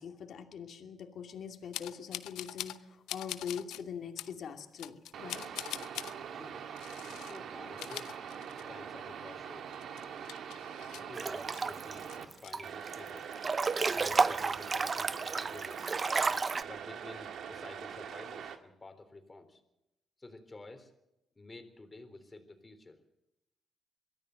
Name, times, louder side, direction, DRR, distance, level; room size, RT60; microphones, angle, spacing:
voice 1, 0.0-5.6, left 7 dB, 60° left, 4 dB, 2.5 m, -43 dB
sound 1, 1.7-2.8 3.1-3.8 4.2-4.3 4.8-6.1 6.8-7.4 7.7-8.9 9.2-9.3 9.7-11.6 12.0-12.5, left 13 dB, 90° left, 0.7 m, -43 dB
sound 2, 5.1-12.3 12.6-18.6, right 7 dB, 70° right, 1.8 m, -43 dB
voice 2, 7.1-8.2 8.7-9.7 11.0-13.3 13.9-16.0 16.6-19.6 20.2-20.9 21.4-23.0, left 2 dB, 20° left, 7 dB, 3.9 m, -51 dB
Breathing / Bathtub (filling or washing) / Splash splatter, 11.1-11.9 12.3-12.9 13.3-16.6, right 4 dB, 35° right, 0.7 m, -31 dB
23.0 x 14.5 x 7.9 m, 0.87 s
cardioid pair, 90°, 0 cm